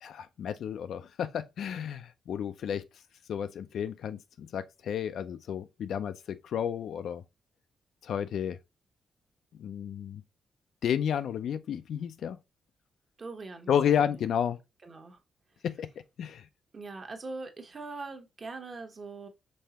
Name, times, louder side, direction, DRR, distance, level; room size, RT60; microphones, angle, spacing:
voice 1, 0.0-2.8 3.3-7.2 8.0-8.6 9.6-10.2 10.8-12.4 13.7-14.6 15.6-15.9 16.2-16.4, left 8 dB, 75° left, 0.5 m, -31 dB
voice 2, 13.2-14.2 14.8-15.2 16.7-19.3, right 3 dB, 35° right, 1.0 m, -42 dB
5.4 x 3.3 x 2.8 m
cardioid pair, 125°, 0 cm